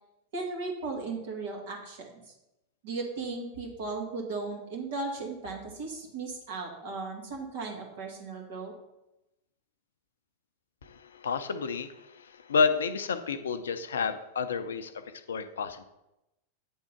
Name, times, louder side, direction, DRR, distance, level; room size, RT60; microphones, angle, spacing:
voice 1, 0.3-2.3 2.8-8.7, right 3 dB, 55° right, 0 dB, 2.1 m, -36 dB
voice 2, 10.8-15.8, left 5 dB, 65° left, 11 dB, 0.5 m, -30 dB
8.6 x 3.7 x 5.7 m, 0.92 s
figure-of-eight pair, 90°, 0 cm